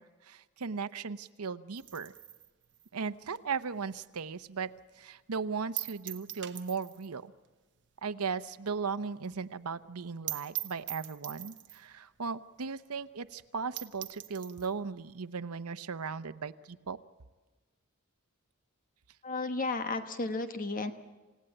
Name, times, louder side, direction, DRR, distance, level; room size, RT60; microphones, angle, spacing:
voice 1, 0.0-2.1 2.9-4.7 5.0-7.3 8.0-17.0, right 5 dB, 90° right, 11 dB, 0.8 m, -37 dB
sound 1, 1.8-4.4 4.7-4.8 5.2-5.3 5.8-7.2 7.4-7.5 7.8-7.9 8.3-8.4 8.7-8.8 9.0-9.1 9.5-9.6 9.9-10.0 10.3-11.9 12.6-12.7 13.0-13.1 13.5-13.6 13.8-14.7, right 16 dB, 60° right, 1.1 m, -42 dB
voice 2, 19.2-20.9, left 3 dB, 40° left, 8 dB, 1.2 m, -33 dB
28.5 x 17.0 x 9.0 m, 1.3 s
head